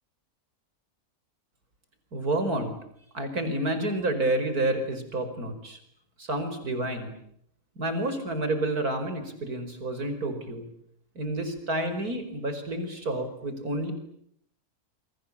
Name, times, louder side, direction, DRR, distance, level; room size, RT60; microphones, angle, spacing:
voice 1, 2.1-2.7 3.1-5.8 6.2-7.1 7.8-10.7 11.2-13.9, right 1 dB, 85° right, 8 dB, 5.6 m, -29 dB
29.0 x 24.0 x 8.6 m, 0.70 s
omnidirectional pair, 1.5 m